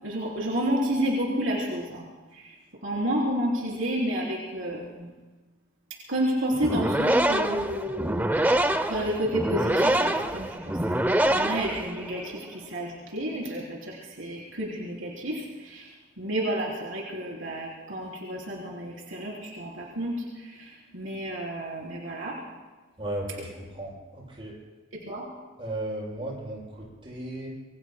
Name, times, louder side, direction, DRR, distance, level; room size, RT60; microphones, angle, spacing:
voice 1, 0.0-2.1 2.3-2.5 2.8-5.1 6.1-8.2 8.8-10.8 11.3-15.9 16.2-22.4 25.0-25.2, equal, 75° right, -4 dB, 3.6 m, -30 dB
sound 1, 6.5-12.3, right 1 dB, 10° right, 0.6 m, -25 dB
voice 2, 23.0-24.5 25.6-27.5, right 1 dB, 30° right, -6 dB, 6.9 m, -35 dB
26.5 x 23.0 x 2.2 m, 1.3 s
head